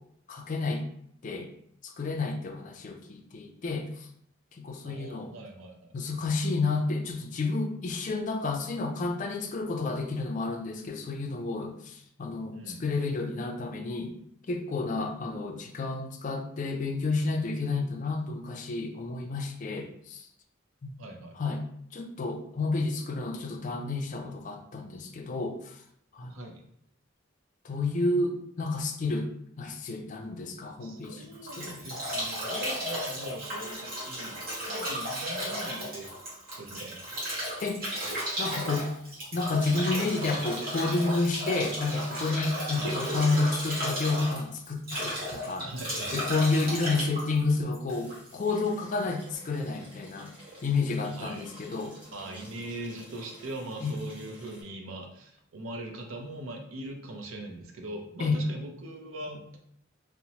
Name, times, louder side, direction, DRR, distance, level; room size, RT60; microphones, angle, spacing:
voice 1, 0.3-0.9 1.2-1.5 1.8-4.1 4.6-5.3 5.9-14.1 14.5-20.3 20.8-20.9 21.4-21.6 21.9-25.8 26.1-26.3 27.6-29.3 29.6-31.8 37.6-37.8 38.4-38.9 39.3-45.7 46.1-50.3 50.6-52.0 53.8-54.0 58.2-58.4, left 3 dB, 40° left, 4 dB, 0.3 m, -30 dB
voice 2, 4.8-5.9 12.5-12.8 21.0-21.4 26.3-26.7 30.8-37.0 42.7-43.0 45.6-46.7 51.1-51.5 52.0-59.6, right 1 dB, 90° right, 3 dB, 0.5 m, -41 dB
Bathtub (filling or washing) / Drip / Trickle dribble, 31.0-48.3, equal, 50° right, 1.1 m, -34 dB
sound 1, 47.9-54.6, right 1 dB, 25° right, 1.0 m, -52 dB
2.9 x 2.0 x 2.8 m, 0.69 s
head